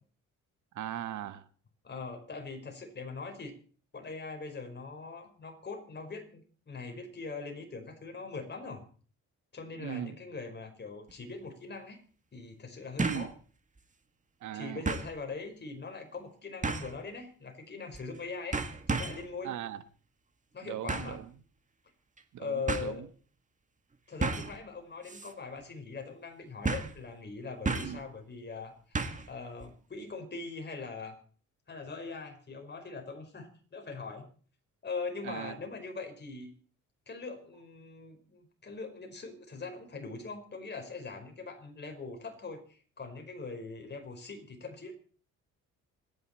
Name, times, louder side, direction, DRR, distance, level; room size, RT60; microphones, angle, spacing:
voice 1, 0.7-1.4 9.8-10.2 13.0-13.3 14.4-14.8 19.4-19.8 20.6-21.3 22.3-23.1 27.8-28.0 35.2-35.5, right 11 dB, 75° right, 12 dB, 1.3 m, -39 dB
voice 2, 1.8-3.6 3.9-8.8 9.5-12.0 12.3-13.3 14.5-18.6 18.9-19.5 20.5-21.2 22.4-23.1 24.1-29.0 29.3-31.2 31.7-34.3 34.8-36.5 37.1-44.9, left 4 dB, 35° left, 4 dB, 4.7 m, -41 dB
sound 1, 11.1-11.2 13.0-13.3 13.8-13.9 14.9-15.1 16.6-17.0 17.9-18.2 18.5-19.3 20.9-21.2 22.2-22.3 22.7-22.9 24.2-24.6 25.1-25.3 25.6-25.7 26.6-27.0 27.7-28.0 29.0-29.3 29.6-29.7, right 3 dB, 25° right, 1.9 m, -33 dB
27.0 x 9.8 x 4.4 m, 0.42 s
cardioid pair, 90°, 30 cm